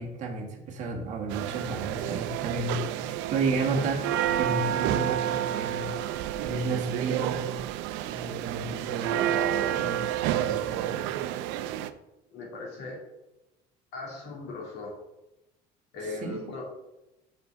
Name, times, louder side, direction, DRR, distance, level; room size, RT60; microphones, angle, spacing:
voice 1, 0.0-5.9 6.4-7.4 8.0-11.1 16.2-16.5, right 3 dB, 40° right, 0 dB, 1.4 m, -33 dB
sound 1, 1.3-11.9, right 11 dB, 75° right, 0.5 m, -30 dB
voice 2, 12.3-13.0 13.9-14.9 15.9-16.6, left 3 dB, 60° left, -2 dB, 2.3 m, -38 dB
6.4 x 5.7 x 4.9 m, 0.95 s
cardioid pair, 180°, 19 cm